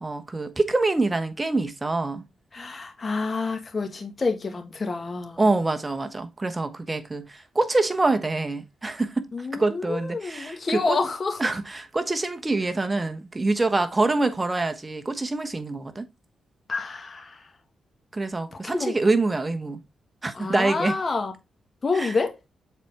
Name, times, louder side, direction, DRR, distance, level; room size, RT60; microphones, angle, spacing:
voice 1, 0.0-2.3 5.4-9.3 9.5-10.6 10.9-11.0 11.4-16.1 18.1-19.8 20.2-20.9 22.0-22.1, right 2 dB, 25° right, 1.1 m, -25 dB
voice 2, 2.5-5.5 9.3-11.5 16.7-17.5 18.5-19.0 20.3-21.3 21.8-22.4, left 4 dB, 40° left, 1.8 m, -28 dB
7.3 x 4.3 x 3.4 m
cardioid pair, 65°, 0 cm